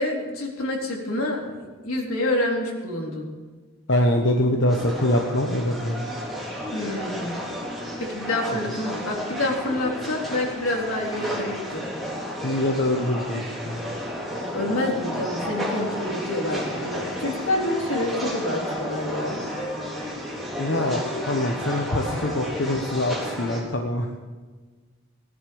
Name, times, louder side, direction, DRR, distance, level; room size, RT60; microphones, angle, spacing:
voice 1, 0.0-1.6 1.8-3.3 6.7-7.4 8.0-11.8 14.5-19.4, left 1 dB, 85° left, -1 dB, 3.8 m, -27 dB
voice 2, 3.9-6.0 12.4-13.8 20.6-24.1, left 1 dB, 60° left, 2 dB, 1.2 m, -24 dB
sound 1, 4.7-23.6, equal, ahead, 3.8 m, -32 dB
18.0 x 11.0 x 7.1 m, 1.4 s
head